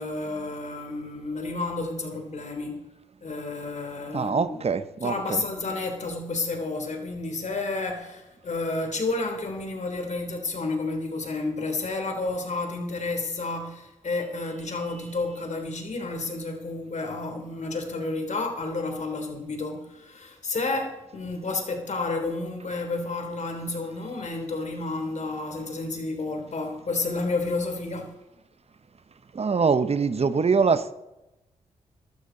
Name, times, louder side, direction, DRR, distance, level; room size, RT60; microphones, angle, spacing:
voice 1, 0.0-2.8 3.2-4.6 5.0-28.1, left 3 dB, 50° left, 4 dB, 3.3 m, -31 dB
voice 2, 4.1-5.4 29.3-30.9, right 5 dB, 45° right, 13 dB, 1.0 m, -23 dB
14.5 x 12.5 x 4.0 m, 0.94 s
hypercardioid pair, 40°, 15 cm